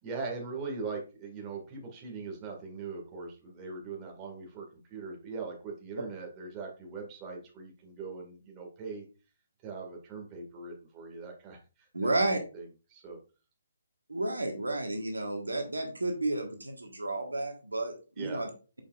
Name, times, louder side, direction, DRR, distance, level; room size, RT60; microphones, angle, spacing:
voice 1, 0.0-9.0 9.6-13.2 18.2-18.4, right 4 dB, 25° right, 1 dB, 2.0 m, -41 dB
voice 2, 11.9-12.4 14.1-18.5, right 2 dB, 85° right, 3 dB, 1.5 m, -31 dB
7.1 x 5.4 x 2.5 m, 0.33 s
figure-of-eight pair, 140°, 0 cm